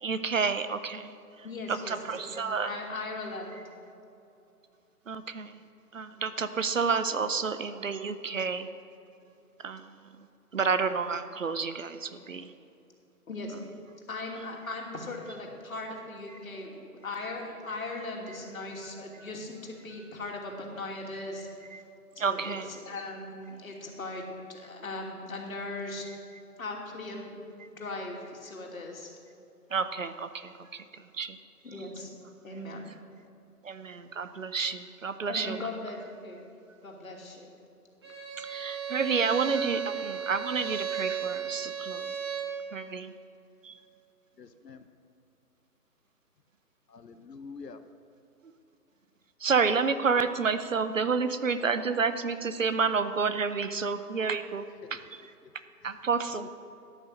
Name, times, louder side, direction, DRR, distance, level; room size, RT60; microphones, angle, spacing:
voice 1, 0.0-2.7 5.1-5.6 5.9-8.7 9.6-9.9 10.5-12.5 21.7-21.8 22.2-22.7 29.7-31.4 33.6-35.6 38.4-42.1 42.7-43.1 43.6-43.8 49.4-55.2 55.8-56.5, right 5 dB, 55° right, 12 dB, 0.8 m, -30 dB
voice 2, 1.4-3.6 13.3-13.6 14.1-21.8 22.1-24.2 24.5-26.1 26.6-29.1 31.6-32.1 32.4-32.9 35.3-36.4 36.8-37.5, left 2 dB, 60° left, 0 dB, 2.8 m, -39 dB
Bowed string instrument, 38.0-42.6, right 8 dB, 15° right, 1.2 m, -34 dB
voice 3, 44.4-44.8 46.9-47.8 54.8-54.9 56.3-56.5, left 5 dB, 85° left, 9 dB, 1.0 m, -46 dB
14.0 x 9.9 x 6.4 m, 2.8 s
figure-of-eight pair, 165°, 48 cm